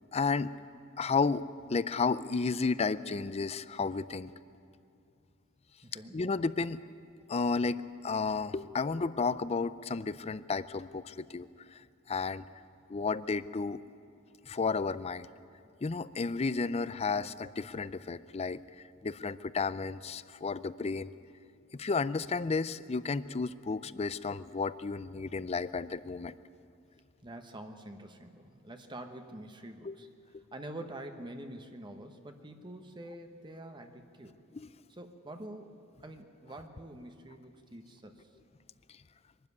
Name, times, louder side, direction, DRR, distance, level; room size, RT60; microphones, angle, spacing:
voice 1, 0.1-0.5 1.0-1.4 1.7-4.3 6.1-6.8 7.3-11.8 12.1-12.5 12.9-13.8 14.4-15.3 15.8-18.6 19.0-21.1 21.7-26.4 29.8-29.9 30.3-30.4, left 4 dB, 30° left, 16 dB, 0.5 m, -32 dB
voice 2, 5.8-6.2 27.2-34.4 34.9-38.3, right 1 dB, 20° right, 6 dB, 1.1 m, -46 dB
23.5 x 12.5 x 9.5 m, 2.5 s
head